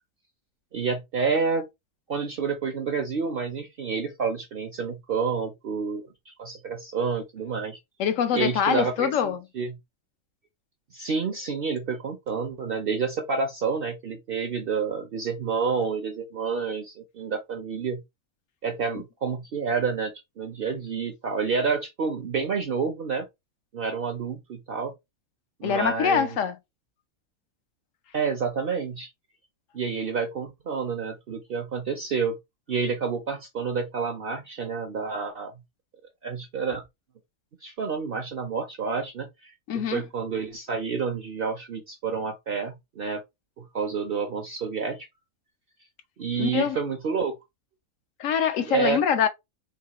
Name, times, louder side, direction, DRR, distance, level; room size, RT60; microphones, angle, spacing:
voice 1, 0.7-1.7 2.1-7.8 8.3-9.8 10.9-18.0 18.6-23.3 23.7-24.9 25.6-26.4 28.1-29.1 29.7-32.4 32.7-35.5 36.2-36.8 37.6-43.2 43.6-45.1 46.2-47.4 48.6-49.0, right 5 dB, 60° right, 0.6 m, -29 dB
voice 2, 8.0-9.4 25.6-26.5 39.7-40.0 46.4-46.8 48.2-49.3, left 8 dB, 70° left, 0.9 m, -24 dB
4.0 x 2.7 x 2.9 m
omnidirectional pair, 1.5 m